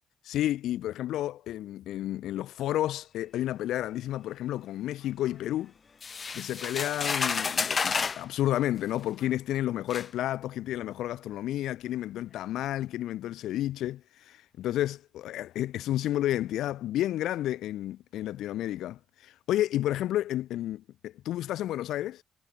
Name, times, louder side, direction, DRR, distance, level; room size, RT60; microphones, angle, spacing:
voice 1, 0.2-5.7 6.3-22.2, left 13 dB, 80° left, 0.9 m, -31 dB
sound 1, 6.0-8.2 9.2-9.3 9.9-10.1, left 5 dB, 40° left, 0.7 m, -30 dB
cardioid pair, 90°, 0 cm